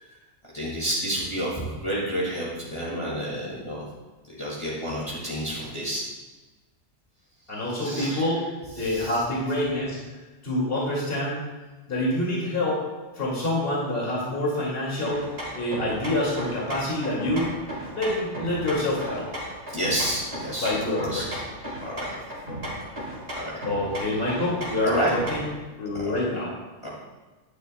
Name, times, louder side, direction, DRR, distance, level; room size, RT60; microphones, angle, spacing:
voice 1, 0.5-3.8 4.3-6.0 7.7-8.3 8.8-9.2 19.7-20.7 21.0-21.3 21.8-22.0 23.4-23.5 24.8-25.1 26.1-26.2 26.8-26.9, equal, 25° left, -7 dB, 1.9 m, -29 dB
voice 2, 7.5-8.4 8.8-10.0 10.4-11.4 11.9-12.8 13.1-17.5 17.9-19.3 20.6-21.4 23.6-25.5 25.8-26.5, left 1 dB, 55° left, -5 dB, 2.5 m, -26 dB
sound 1, 15.1-25.6, equal, 60° right, 2.2 m, -35 dB
11.0 x 9.7 x 2.2 m, 1.2 s
omnidirectional pair, 1.2 m